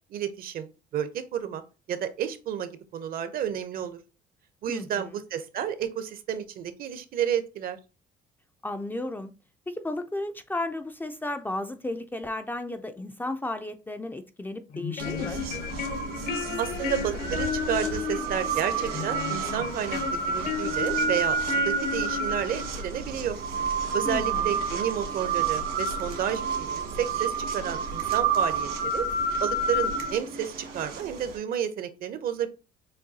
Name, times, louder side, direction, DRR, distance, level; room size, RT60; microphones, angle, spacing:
voice 1, 0.1-1.6 1.9-4.0 4.6-7.8 16.6-23.4 23.9-29.1 29.4-32.5, right 9 dB, 60° right, 0.6 m, -31 dB
voice 2, 4.7-5.2 8.6-9.3 9.7-15.4 24.0-24.6, left 2 dB, 10° left, 0.3 m, -34 dB
sound 1, 14.7-22.8, left 8 dB, 50° left, 0.6 m, -34 dB
sound 2, 15.0-31.4, right 4 dB, 80° right, 1.5 m, -30 dB
6.4 x 2.3 x 2.6 m
cardioid pair, 110°, 17 cm